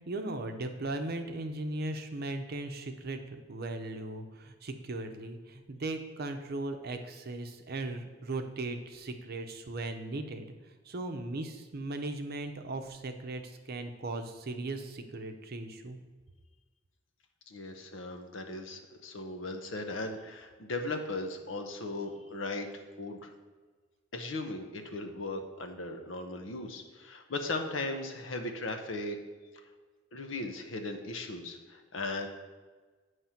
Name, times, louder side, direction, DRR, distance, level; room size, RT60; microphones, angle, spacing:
voice 1, 0.1-10.5 10.9-16.0, right 2 dB, 55° right, 6 dB, 0.7 m, -38 dB
voice 2, 17.5-23.3 24.1-29.2 30.1-32.3, left 2 dB, 70° left, 4 dB, 0.8 m, -37 dB
9.0 x 3.2 x 5.7 m, 1.4 s
head